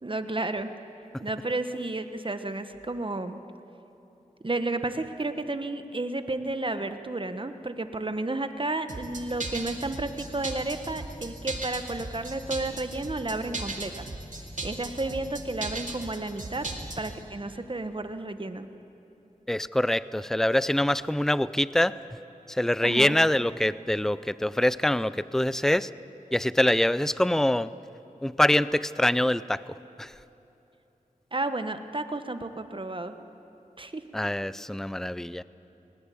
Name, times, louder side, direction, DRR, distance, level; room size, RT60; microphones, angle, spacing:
voice 1, 0.0-0.7 1.2-3.4 4.4-14.0 14.6-16.7 17.0-18.7 22.8-23.2 31.3-33.1 33.8-34.0, right 2 dB, 35° right, 9 dB, 1.3 m, -32 dB
sound 1, 8.9-17.2, right 2 dB, 65° right, 2.5 m, -36 dB
voice 2, 19.5-22.0 22.5-25.9 26.3-27.7 28.2-29.6 30.0-30.1 34.1-35.4, left 1 dB, 5° left, 17 dB, 0.5 m, -24 dB
20.0 x 20.0 x 8.5 m, 2.9 s
cardioid pair, 45°, 14 cm